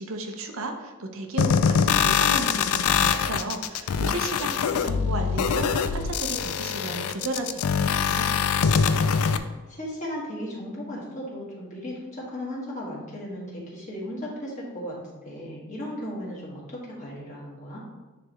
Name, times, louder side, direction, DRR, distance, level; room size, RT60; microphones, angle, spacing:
voice 1, 0.0-4.5 4.8-8.5, right 2 dB, 65° right, 4 dB, 0.7 m, -34 dB
sound 1, 1.4-9.4, left 6 dB, 85° left, 0.4 m, -23 dB
voice 2, 4.6-5.1 9.7-15.0 15.2-17.8, equal, 35° left, -5 dB, 1.8 m, -36 dB
9.9 x 3.4 x 3.1 m, 1.2 s
head